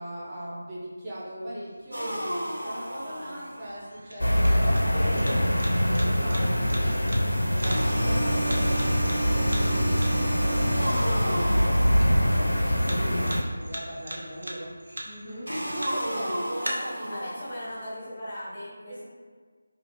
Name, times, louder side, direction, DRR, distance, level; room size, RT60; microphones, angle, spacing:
voice 1, 0.0-7.0 7.4-14.8 15.7-17.3 18.9-19.0, right 1 dB, 15° right, -10 dB, 0.6 m, -39 dB
sound 1, 1.7-16.7, right 1 dB, 60° right, 0.5 m, -42 dB
sound 2, 1.9-3.9 7.6-12.9 15.5-17.9, right 1 dB, 80° right, 0.8 m, -33 dB
sound 3, 4.2-13.4, equal, 75° left, 0.4 m, -24 dB
voice 2, 4.6-5.1 15.0-15.5 17.1-19.0, left 1 dB, 25° left, -7 dB, 1.0 m, -39 dB
3.1 x 2.5 x 3.0 m, 1.6 s
figure-of-eight pair, 160°, 0 cm